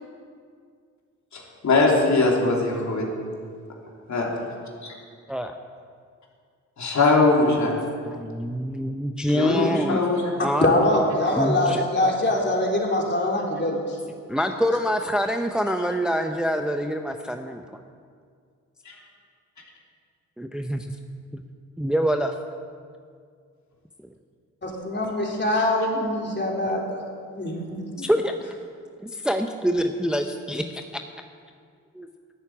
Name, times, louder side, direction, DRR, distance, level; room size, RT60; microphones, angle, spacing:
voice 1, 1.3-3.1 4.1-4.3 4.8-4.9 6.8-7.7 9.3-10.2 18.8-18.9, left 3 dB, 55° left, -1 dB, 3.0 m, -21 dB
voice 2, 8.1-10.0 10.4-10.7 11.3-11.8 14.3-17.6 20.4-20.9 21.8-22.4 28.0-28.4 29.0-31.0 31.9-32.1, equal, ahead, 6 dB, 0.7 m, -25 dB
voice 3, 10.6-14.0 24.6-27.0 27.4-28.1, left 1 dB, 30° left, -1 dB, 3.6 m, -23 dB
11.0 x 8.2 x 8.6 m, 2.1 s
supercardioid pair, 55°, 34 cm